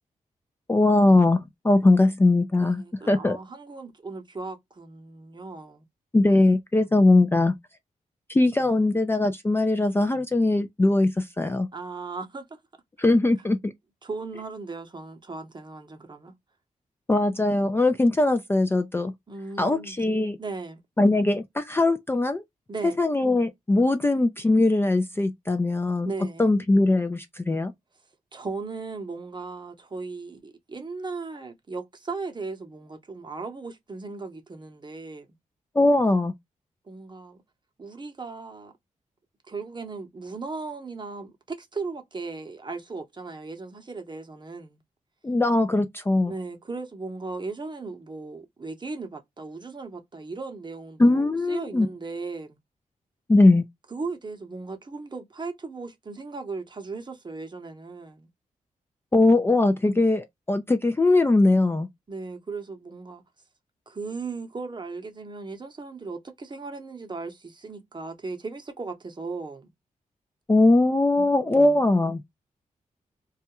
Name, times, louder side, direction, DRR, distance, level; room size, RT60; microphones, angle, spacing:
voice 1, 0.7-3.4 6.1-7.6 8.3-11.7 13.0-13.7 17.1-19.1 19.6-20.4 21.0-22.4 23.0-26.1 26.4-27.7 35.8-36.3 45.2-46.3 51.0-51.9 53.3-53.6 59.1-61.9 70.5-72.2, left 2 dB, 15° left, 0.3 m, -21 dB
voice 2, 2.5-5.8 11.7-12.6 13.0-13.1 14.0-16.3 19.3-20.0 20.4-20.8 22.7-23.0 26.0-26.5 28.3-35.3 36.9-37.4 37.8-38.7 39.5-44.8 46.3-52.6 53.9-58.3 62.1-63.2 63.9-69.7 71.2-71.9, right 3 dB, 35° right, 0.8 m, -37 dB
2.3 x 2.1 x 2.8 m
cardioid pair, 55°, 14 cm